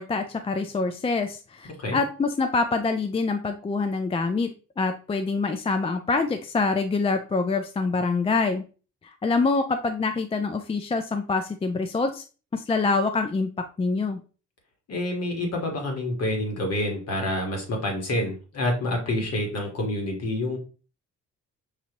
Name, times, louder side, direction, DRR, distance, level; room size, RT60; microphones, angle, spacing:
voice 1, 0.0-8.6 9.2-12.2 12.5-14.2, left 3 dB, 20° left, 7 dB, 0.4 m, -25 dB
voice 2, 14.9-20.6, left 1 dB, 55° left, 1 dB, 1.5 m, -27 dB
5.2 x 2.7 x 2.9 m, 0.35 s
cardioid pair, 90°, 30 cm